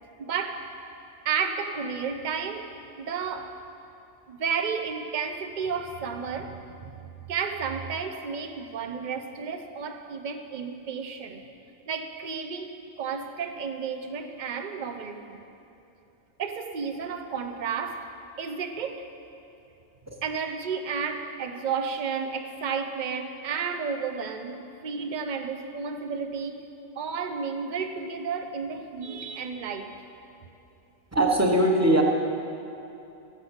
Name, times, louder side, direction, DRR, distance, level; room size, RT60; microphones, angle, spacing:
voice 1, 0.2-0.7 1.2-3.6 4.3-11.4 11.9-15.4 16.4-18.1 18.4-19.1 20.2-26.7 27.0-30.0, right 6 dB, 45° right, 7 dB, 0.8 m, -32 dB
voice 2, 31.1-32.0, right 1 dB, 15° right, 0 dB, 1.0 m, -21 dB
13.5 x 6.1 x 7.9 m, 2.9 s
omnidirectional pair, 1.3 m